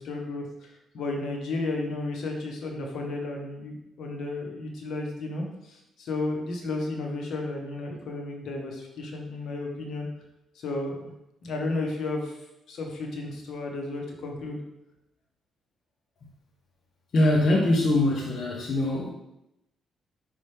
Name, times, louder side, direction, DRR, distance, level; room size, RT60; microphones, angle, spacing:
voice 1, 0.0-10.1 10.5-11.1 11.4-12.3 12.7-14.6, left 2 dB, 70° left, 1 dB, 1.3 m, -33 dB
voice 2, 17.1-19.1, left 1 dB, 55° left, -2 dB, 1.0 m, -22 dB
5.6 x 5.1 x 3.5 m, 0.86 s
cardioid pair, 90°, 0 cm